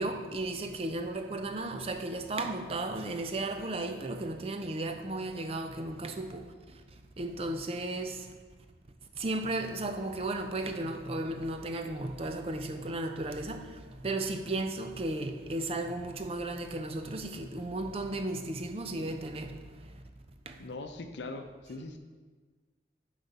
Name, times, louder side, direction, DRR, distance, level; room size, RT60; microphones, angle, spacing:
voice 1, 0.0-6.4 7.2-8.2 9.2-13.7 14.0-19.5 20.5-20.6, right 2 dB, 35° right, 0.5 m, -34 dB
voice 2, 20.6-22.0, left 2 dB, 85° left, 0.6 m, -41 dB
8.9 x 3.2 x 5.4 m
head